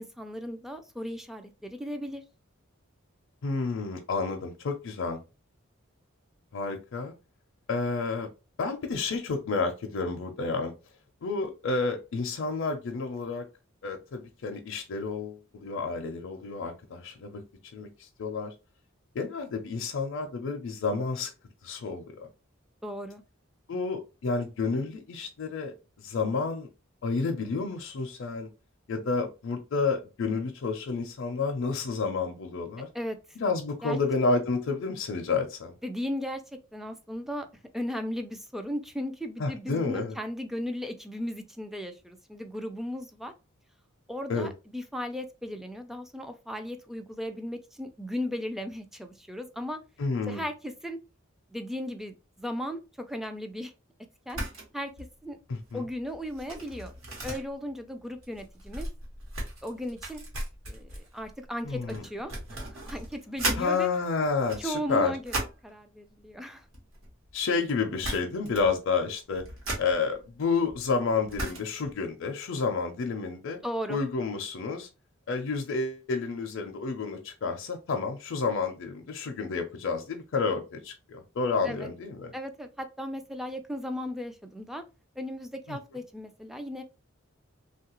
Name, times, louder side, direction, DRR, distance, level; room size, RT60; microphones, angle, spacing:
voice 1, 0.0-2.2 22.8-23.2 32.9-33.2 33.8-34.0 35.8-36.4 36.7-37.5 37.7-43.3 44.1-49.8 50.3-51.0 51.5-52.8 53.1-53.7 54.3-54.4 54.7-54.9 55.2-55.4 55.7-56.9 57.2-58.9 59.6-60.2 60.7-62.6 62.9-63.9 64.6-65.3 65.6-66.6 73.6-74.0 81.6-81.9 82.3-84.8 85.2-86.8, equal, ahead, 6 dB, 0.3 m, -36 dB
voice 2, 3.4-5.2 6.5-7.1 7.7-8.3 8.6-10.7 11.2-13.4 13.8-17.4 17.7-18.5 19.1-21.3 21.6-22.3 23.7-26.7 27.0-28.5 28.9-32.9 33.4-35.7 39.4-40.2 44.3-44.5 50.0-50.4 55.5-55.8 61.6-62.0 63.6-65.2 67.3-69.4 69.8-73.6 73.9-74.9 75.3-82.3 85.7-85.8, left 4 dB, 65° left, 3 dB, 0.5 m, -30 dB
sound 1, 54.3-54.7 55.0-55.2 55.6-63.7 64.3-65.7 66.6-67.4 67.7-67.8 68.0-68.8 69.1-71.9, right 1 dB, 85° right, 1.3 m, -37 dB
3.1 x 2.3 x 2.9 m, 0.29 s
head